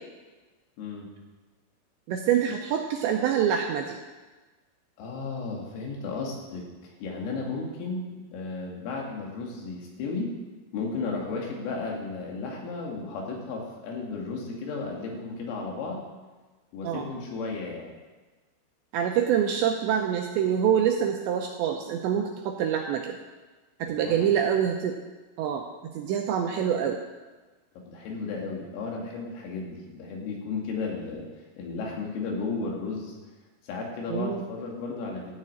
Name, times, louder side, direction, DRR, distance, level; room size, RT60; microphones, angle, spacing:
voice 1, 0.8-1.1 5.0-10.3 10.7-16.0 16.7-17.9 23.9-24.3 27.8-31.3 31.6-33.2 33.6-35.4, left 4 dB, 80° left, -1 dB, 4.8 m, -34 dB
voice 2, 2.1-4.0 16.8-17.1 18.9-23.2 23.8-25.0 25.4-25.6 25.9-27.0 34.1-34.5, right 9 dB, 85° right, 2 dB, 2.6 m, -26 dB
13.0 x 6.5 x 8.7 m, 1.3 s
omnidirectional pair, 5.9 m